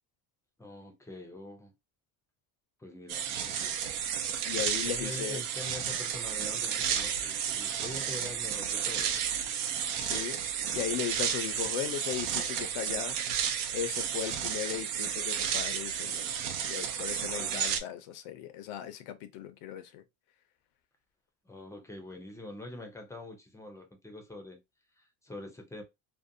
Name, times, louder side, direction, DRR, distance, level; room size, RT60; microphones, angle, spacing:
voice 1, 0.6-1.7 2.8-3.9 4.9-9.1 17.3-17.7 21.5-24.6 25.0-25.8, left 1 dB, 5° left, 0.4 m, -44 dB
sound 1, 3.1-17.8, right 8 dB, 85° right, 0.6 m, -32 dB
voice 2, 4.5-5.4 10.0-10.4 10.7-13.2 13.7-16.3 16.7-20.0, left 11 dB, 85° left, 0.7 m, -37 dB
2.6 x 2.1 x 2.5 m
cardioid pair, 130°, 48 cm